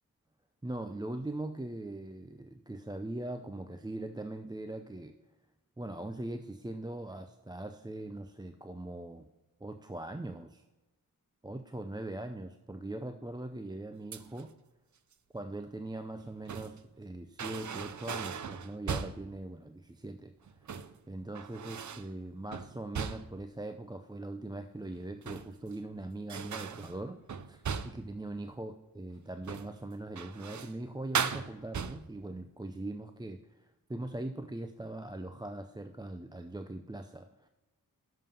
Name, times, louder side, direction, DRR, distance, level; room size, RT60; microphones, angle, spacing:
voice 1, 0.6-5.1 5.8-9.3 9.6-10.6 11.4-14.5 15.3-20.3 20.7-20.8 21.1-27.2 27.5-37.5, right 2 dB, 10° right, 7 dB, 0.5 m, -41 dB
sound 1, 14.1-14.5 16.1-16.9 17.4-19.3 20.5-21.0 21.3-22.1 22.5-23.5 25.0-25.8 26.3-28.1 29.4-29.8 30.2-30.8 31.1-32.2, right 6 dB, 60° right, 0.6 m, -38 dB
7.3 x 5.5 x 5.5 m, 1.1 s
wide cardioid pair, 55°, 34 cm